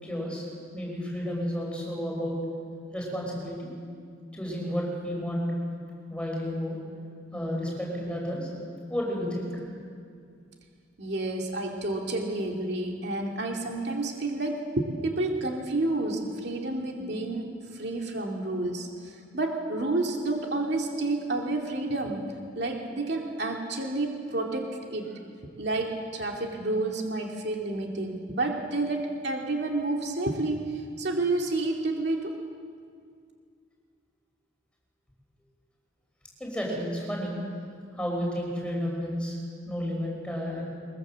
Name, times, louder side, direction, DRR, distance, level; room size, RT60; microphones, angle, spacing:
voice 1, 0.0-0.4 0.7-2.4 2.9-3.7 4.3-5.6 6.1-6.8 7.3-8.5 8.9-9.5 36.4-37.4 38.0-39.4 39.7-40.7, equal, 5° left, -2 dB, 5.9 m, -31 dB
voice 2, 11.0-22.2 22.5-25.1 25.6-32.3, right 2 dB, 60° right, 1 dB, 2.5 m, -30 dB
22.0 x 22.0 x 7.5 m, 2.2 s
head